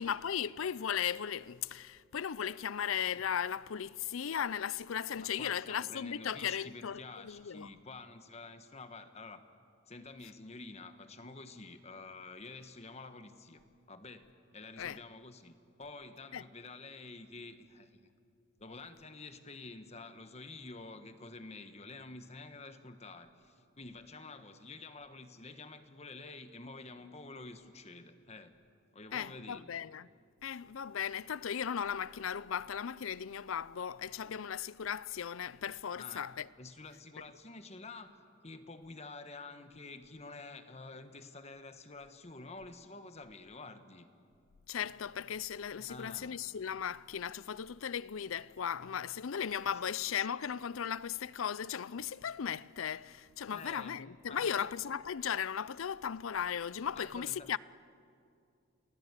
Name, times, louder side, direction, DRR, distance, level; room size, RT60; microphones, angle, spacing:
voice 1, 0.0-7.7 14.8-15.0 16.3-16.4 29.1-30.1 30.4-36.5 44.7-57.6, left 8 dB, 85° left, 0.5 m, -37 dB
voice 2, 5.2-9.4 9.9-14.3 14.5-18.0 18.6-28.5 28.9-29.7 36.0-36.3 36.6-44.1 45.8-46.4 49.6-49.8 53.5-54.0 54.3-54.7 56.9-57.5, left 3 dB, 35° left, 1.2 m, -49 dB
29.5 x 20.0 x 8.2 m
head